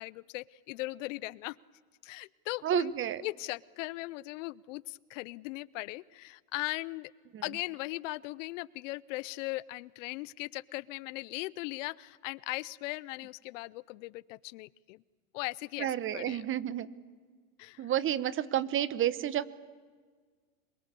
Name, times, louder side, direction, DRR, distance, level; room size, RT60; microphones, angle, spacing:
voice 1, 0.0-1.6 2.0-7.1 7.4-15.0 15.3-15.9 16.1-16.4 17.6-17.9, left 21 dB, 60° left, 22 dB, 0.7 m, -39 dB
voice 2, 2.6-3.2 7.3-7.4 15.8-16.9 17.8-19.5, right 11 dB, 25° right, 17 dB, 1.0 m, -30 dB
26.0 x 23.0 x 8.3 m, 1.5 s
hypercardioid pair, 120°, 44 cm